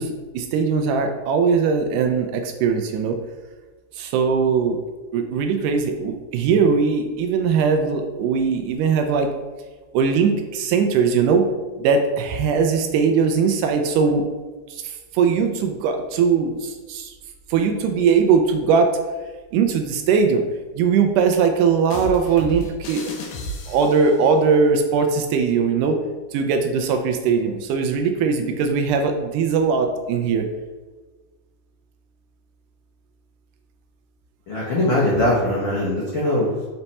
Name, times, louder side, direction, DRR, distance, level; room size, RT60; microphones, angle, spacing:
voice 1, 0.0-3.2 3.9-4.8 5.1-9.3 9.9-11.5 11.8-14.2 14.7-17.1 17.5-18.9 19.5-20.4 20.8-23.1 23.7-26.0 26.3-30.5, right 5 dB, 80° right, 5 dB, 2.0 m, -20 dB
sound 1, 21.9-24.2, equal, 70° left, 2.1 m, -33 dB
voice 2, 34.5-36.5, left 1 dB, 90° left, -5 dB, 1.1 m, -21 dB
7.0 x 3.3 x 4.1 m, 1.3 s
omnidirectional pair, 3.9 m